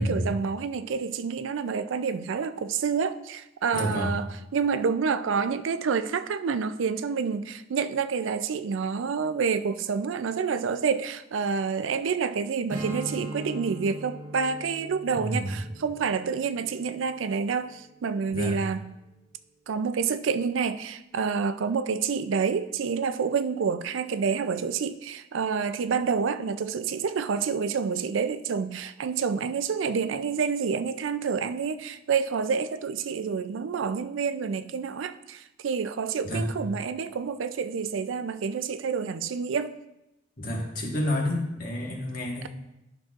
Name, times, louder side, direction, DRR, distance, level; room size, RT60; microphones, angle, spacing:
voice 1, 0.0-18.9 19.7-39.8, right 5 dB, 85° right, 0.4 m, -28 dB
voice 2, 3.7-4.1 15.1-15.6 18.3-18.6 36.2-36.5 40.4-42.5, equal, 50° left, 1.5 m, -29 dB
Strum, 12.7-18.0, right 1 dB, 45° right, 0.9 m, -40 dB
11.0 x 6.0 x 2.4 m
head